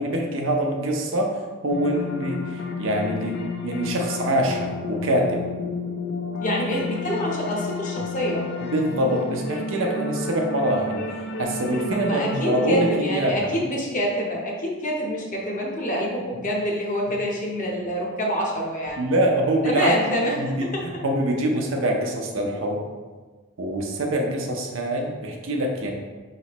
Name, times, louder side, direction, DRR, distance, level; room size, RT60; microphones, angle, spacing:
voice 1, 0.0-5.4 8.6-13.6 19.0-20.0 20.3-22.8 23.6-25.9, right 1 dB, 70° right, 1 dB, 0.7 m, -25 dB
sound 1, 1.7-13.0, left 3 dB, 55° left, 0.4 m, -31 dB
voice 2, 6.4-8.5 11.9-19.0 19.6-20.4 20.7-20.8, equal, 40° left, -2 dB, 0.8 m, -26 dB
5.0 x 3.1 x 3.0 m, 1.4 s
head